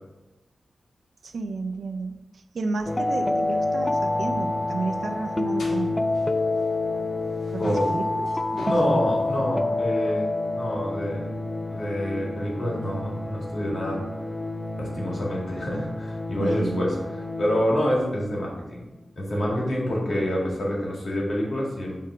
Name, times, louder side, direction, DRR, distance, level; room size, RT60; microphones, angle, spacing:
voice 1, 1.2-6.1 7.5-8.3 8.7-8.8 16.4-16.8, right 3 dB, 75° right, 7 dB, 0.5 m, -32 dB
sound 1, 2.8-7.0 7.3-9.4, left 1 dB, 85° left, 1.6 m, -45 dB
sound 2, 2.9-18.6, left 2 dB, 15° left, 0.3 m, -28 dB
voice 2, 8.6-10.3 10.6-11.3 11.7-14.1 14.8-17.0 17.4-18.8 19.2-22.0, equal, 60° left, -3 dB, 1.9 m, -27 dB
5.7 x 3.5 x 4.9 m, 1.0 s
wide cardioid pair, 115°, 0 cm